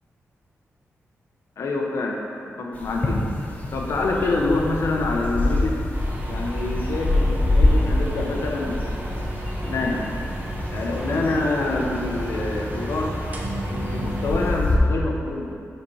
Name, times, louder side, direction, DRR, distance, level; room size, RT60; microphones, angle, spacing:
voice 1, 1.6-5.8 6.3-9.4 9.7-10.0 10.7-13.1 13.7-15.7, left 3 dB, 70° left, 0 dB, 0.7 m, -26 dB
sound 1, 2.7-14.8, left 2 dB, 30° left, 0.7 m, -27 dB
sound 2, 3.7-14.4, equal, ahead, 0.3 m, -32 dB
sound 3, 5.9-14.6, right 1 dB, 30° right, 0.7 m, -35 dB
5.1 x 4.3 x 4.8 m, 2.4 s
wide cardioid pair, 150°, 5 cm